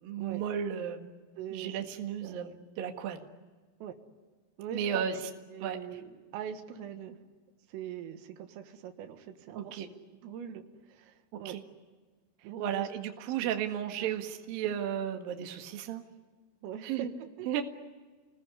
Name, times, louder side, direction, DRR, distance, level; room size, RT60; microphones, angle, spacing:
voice 1, 0.0-1.1 1.5-3.2 4.7-5.2 5.6-5.8 9.5-9.9 11.3-11.6 12.6-16.0 16.8-17.1 17.5-17.6, right 9 dB, 60° right, 4 dB, 2.9 m, -34 dB
voice 2, 1.4-1.8 2.2-2.6 3.8-4.0 4.6-5.0 5.5-7.2 7.7-9.9 10.2-11.6 12.4-12.9 13.2-13.6 14.0-14.2 16.6-17.1 17.4-17.5, right 9 dB, 85° right, 6 dB, 4.3 m, -42 dB
28.5 x 20.0 x 9.8 m, 1.4 s
omnidirectional pair, 5.8 m